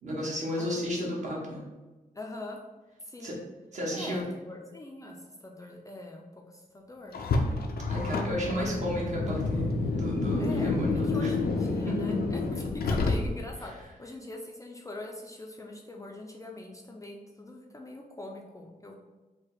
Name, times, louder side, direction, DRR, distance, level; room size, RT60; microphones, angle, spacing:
voice 1, 0.0-1.6 3.2-3.3 3.7-4.2 7.9-11.3 11.9-12.0, equal, 50° right, -4 dB, 1.3 m, -32 dB
voice 2, 0.6-1.4 2.1-2.6 3.0-3.4 3.9-7.2 8.5-8.7 10.4-19.0, left 2 dB, 20° left, 0 dB, 0.4 m, -43 dB
Car, 7.1-13.6, left 3 dB, 90° left, 0.5 m, -29 dB
5.2 x 2.2 x 4.0 m, 1.2 s
wide cardioid pair, 145°, 15 cm